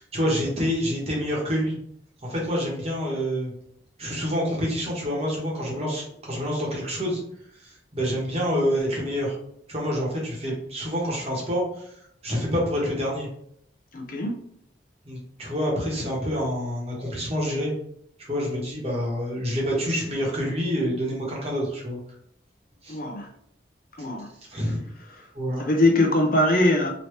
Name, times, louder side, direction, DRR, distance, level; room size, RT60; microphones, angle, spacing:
voice 1, 0.0-1.8 2.3-3.5 4.0-7.2 7.5-9.4 9.7-13.3 15.1-17.7 18.2-22.0 22.8-23.0 24.5-24.8 25.3-25.6, equal, 35° right, -3 dB, 1.0 m, -27 dB
voice 2, 13.9-14.4 22.9-23.3 24.0-24.3 25.6-26.9, left 1 dB, 50° left, 2 dB, 0.6 m, -22 dB
3.0 x 2.8 x 3.1 m, 0.70 s
head